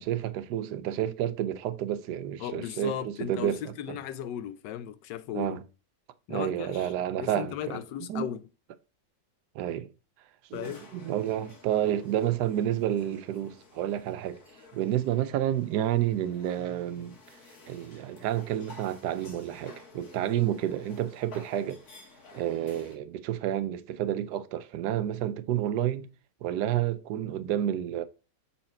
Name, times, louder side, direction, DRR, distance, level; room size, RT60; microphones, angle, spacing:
voice 1, 0.0-3.6 5.3-5.6 6.3-7.8 8.1-8.3 9.5-9.9 10.5-14.4 14.7-17.2 17.7-21.8 22.3-26.1 26.4-28.0, right 11 dB, 75° right, 1.0 m, -30 dB
voice 2, 2.4-5.6 6.3-6.9 7.2-8.4 10.5-10.9, left 10 dB, 75° left, 1.2 m, -36 dB
sound 1, 10.5-23.0, left 4 dB, 55° left, 1.9 m, -53 dB
6.3 x 4.3 x 4.3 m
omnidirectional pair, 2.0 m